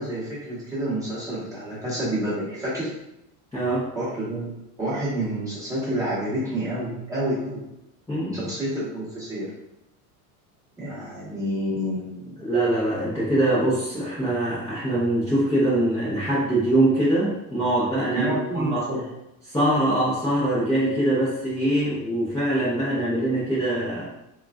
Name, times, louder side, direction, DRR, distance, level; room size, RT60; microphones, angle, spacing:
voice 1, 0.0-2.9 4.0-7.6 8.3-9.5 10.8-12.5 18.1-19.0, right 1 dB, 10° right, -9 dB, 0.9 m, -29 dB
voice 2, 3.5-3.9 8.1-8.5 12.4-18.9 19.5-24.0, right 1 dB, 10° left, -11 dB, 0.6 m, -23 dB
3.0 x 2.3 x 2.3 m, 0.86 s
supercardioid pair, 140°, 42 cm